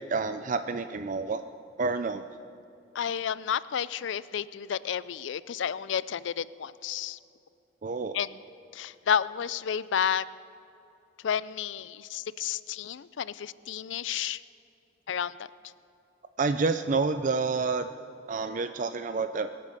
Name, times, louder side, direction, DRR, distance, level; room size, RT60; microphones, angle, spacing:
voice 1, 0.0-1.4 1.8-2.2 7.8-8.1 16.4-17.9 18.3-19.5, right 4 dB, 40° right, 10 dB, 0.4 m, -28 dB
voice 2, 3.0-7.2 8.1-8.3 8.7-10.2 11.2-14.4 15.1-15.4, left 8 dB, 70° left, 18 dB, 0.4 m, -31 dB
23.5 x 8.4 x 6.7 m, 2.8 s
head